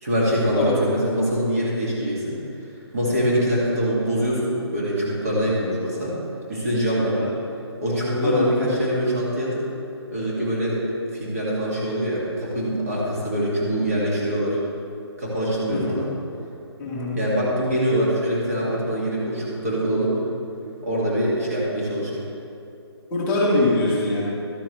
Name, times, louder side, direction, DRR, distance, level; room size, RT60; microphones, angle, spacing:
voice 1, 0.0-2.4 2.9-6.2 6.5-7.2 7.8-9.6 10.1-10.8 11.1-14.6 15.2-16.1 17.2-20.1 20.8-22.1, equal, 35° right, -6 dB, 2.1 m, -24 dB
voice 2, 16.8-17.2 23.1-24.2, left 2 dB, 10° left, -7 dB, 0.9 m, -23 dB
12.5 x 9.9 x 3.2 m, 2.7 s
hypercardioid pair, 175°, 14 cm